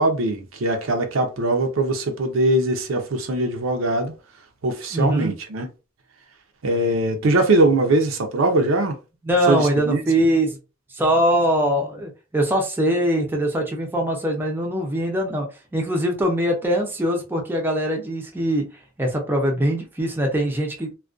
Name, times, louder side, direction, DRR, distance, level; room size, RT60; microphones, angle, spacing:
voice 1, 0.0-4.1 4.6-5.7 6.6-9.0 9.5-10.0, right 2 dB, 70° right, 0.5 m, -21 dB
voice 2, 4.9-5.3 9.2-10.6 10.9-15.5 15.7-18.6 19.0-20.9, equal, 10° right, 0.5 m, -22 dB
2.4 x 2.2 x 2.4 m
head